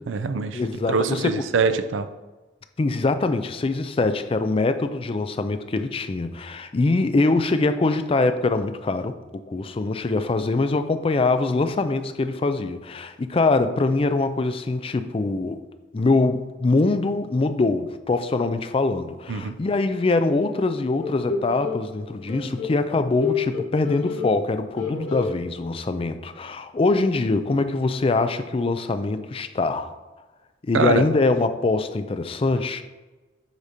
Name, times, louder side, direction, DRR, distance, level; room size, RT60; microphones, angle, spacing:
voice 1, 0.0-0.6 0.9-2.1 19.3-19.5 30.7-31.0, right 4 dB, 80° right, 10 dB, 0.5 m, -23 dB
voice 2, 0.5-1.4 2.8-15.6 15.9-29.9 30.6-32.8, left 3 dB, 30° left, 9 dB, 0.4 m, -23 dB
sound 1, 21.0-21.8 22.3-24.5 24.8-25.3, left 5 dB, 85° left, 1.5 m, -29 dB
8.0 x 2.8 x 5.1 m, 1.2 s
head